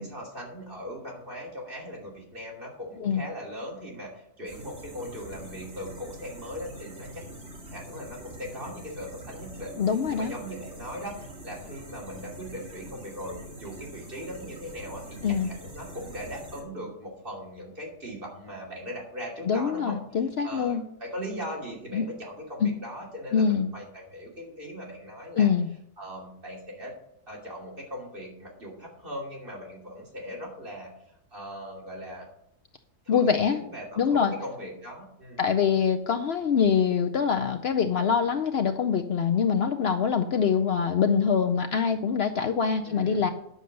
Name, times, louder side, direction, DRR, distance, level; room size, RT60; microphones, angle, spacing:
voice 1, 0.0-7.2 7.7-9.8 10.1-20.0 20.4-25.5 26.0-26.9 27.3-30.9 31.3-32.3 33.0-35.5 42.8-43.3, equal, 40° right, -3 dB, 3.1 m, -39 dB
sound 1, 4.5-16.6, right 1 dB, 60° right, 2.6 m, -44 dB
voice 2, 9.8-10.3 15.2-15.5 19.5-20.8 21.9-22.1 22.6-22.7 23.3-23.7 25.4-25.7 33.1-33.6 34.0-34.3 35.4-43.3, left 6 dB, 60° left, 6 dB, 0.8 m, -24 dB
10.0 x 6.5 x 6.6 m, 0.75 s
omnidirectional pair, 1.4 m